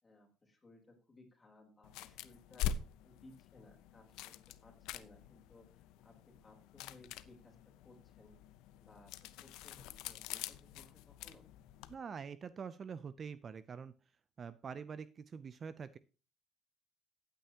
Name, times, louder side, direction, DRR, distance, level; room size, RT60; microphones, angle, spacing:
voice 1, 0.0-4.3 4.6-8.4 8.8-9.1 9.4-11.4, left 2 dB, 15° left, 2 dB, 3.8 m, -61 dB
sound 1, 1.8-11.9, left 9 dB, 90° left, 0.7 m, -45 dB
voice 2, 11.9-13.9 14.4-16.0, right 6 dB, 35° right, 15 dB, 0.5 m, -45 dB
15.5 x 9.1 x 2.9 m, 0.33 s
cardioid pair, 135°, 0 cm